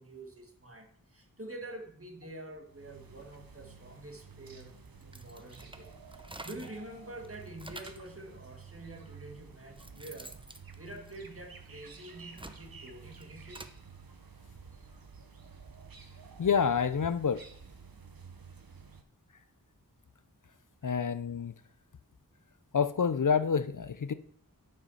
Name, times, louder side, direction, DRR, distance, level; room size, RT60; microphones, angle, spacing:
voice 1, 0.0-10.5 10.8-13.6 14.7-14.8 20.8-21.0, right 1 dB, 40° right, 1.8 m, -47 dB
sound 1, 2.7-19.0, right 5 dB, 70° right, 0.9 m, -52 dB
sound 2, 5.0-6.9 7.2-8.1 8.9-9.0 9.5-11.6 12.1-13.8, right 1 dB, 15° right, 0.7 m, -49 dB
voice 2, 16.4-17.4 20.8-21.5 22.7-24.1, left 6 dB, 60° left, 0.5 m, -28 dB
9.0 x 5.6 x 5.6 m
wide cardioid pair, 45°, 36 cm